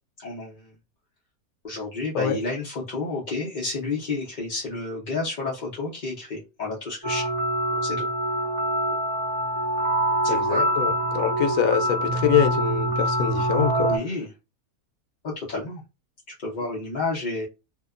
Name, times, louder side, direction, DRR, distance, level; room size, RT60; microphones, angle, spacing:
voice 1, 0.2-0.7 1.6-7.3 7.8-8.1 10.2-10.7 13.8-14.3 15.2-15.8 16.4-17.5, left 3 dB, 45° left, 0.6 m, -30 dB
sound 1, 7.0-14.0, right 1 dB, 15° right, 0.8 m, -25 dB
voice 2, 10.3-14.0, left 9 dB, 80° left, 1.1 m, -24 dB
2.8 x 2.1 x 2.4 m
omnidirectional pair, 1.6 m